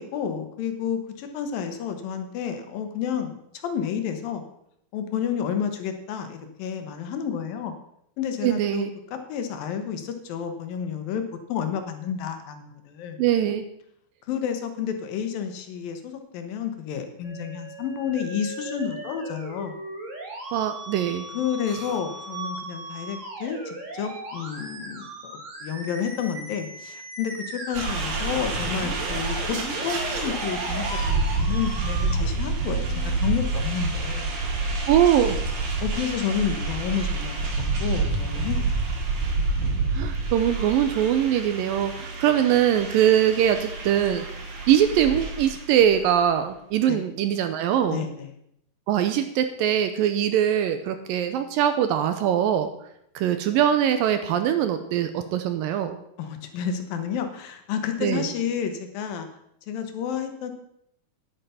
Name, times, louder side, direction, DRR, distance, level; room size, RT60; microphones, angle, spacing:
voice 1, 0.0-4.4 4.9-7.8 8.2-11.2 11.5-13.2 14.3-19.7 21.3-29.6 29.8-34.3 35.8-37.3 37.8-38.6 46.9-47.1 47.9-48.3 56.2-59.3 59.7-60.5, left 8 dB, 75° left, 7 dB, 2.6 m, -30 dB
voice 2, 8.4-8.9 13.2-13.6 20.5-21.3 34.9-35.4 39.9-44.3 44.7-48.1 48.9-52.7 53.2-56.0 58.0-58.3, right 10 dB, 75° right, 9 dB, 2.2 m, -22 dB
Musical instrument, 17.2-33.2, right 2 dB, 40° right, 1.1 m, -38 dB
sound 1, 27.7-46.1, right 3 dB, 60° right, 3.1 m, -28 dB
9.9 x 9.1 x 5.6 m, 0.74 s
omnidirectional pair, 4.4 m